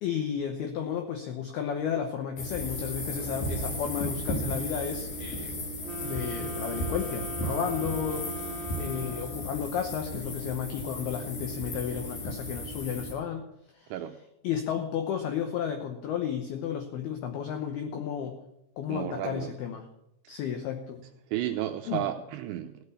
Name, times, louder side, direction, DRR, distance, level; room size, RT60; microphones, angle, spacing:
voice 1, 0.0-5.6 6.0-13.5 13.7-13.9 14.4-18.4 18.8-19.8 20.3-21.0 21.9-22.1, left 8 dB, 80° left, 5 dB, 2.3 m, -33 dB
sound 1, 2.4-13.1, left 1 dB, 45° left, 3.4 m, -35 dB
sound 2, 5.8-9.7, right 3 dB, 15° left, 2.3 m, -40 dB
voice 2, 8.8-9.1 13.9-14.2 18.9-19.5 21.3-22.7, right 12 dB, 90° right, 6 dB, 2.6 m, -33 dB
16.5 x 6.6 x 8.3 m, 0.83 s
omnidirectional pair, 5.9 m